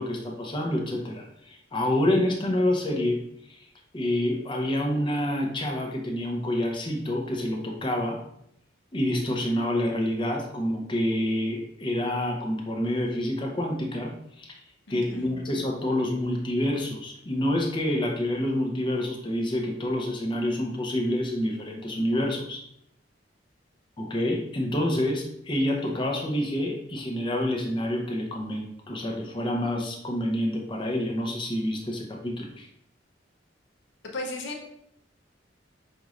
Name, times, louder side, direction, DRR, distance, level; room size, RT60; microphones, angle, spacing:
voice 1, 0.0-3.2 3.5-3.6 3.9-8.2 8.9-14.6 14.9-22.6 24.0-32.7, left 1 dB, 25° left, 1 dB, 0.6 m, -28 dB
voice 2, 14.9-15.3 34.1-34.7, left 2 dB, 70° left, 0 dB, 0.7 m, -35 dB
5.2 x 3.0 x 2.4 m, 0.75 s
head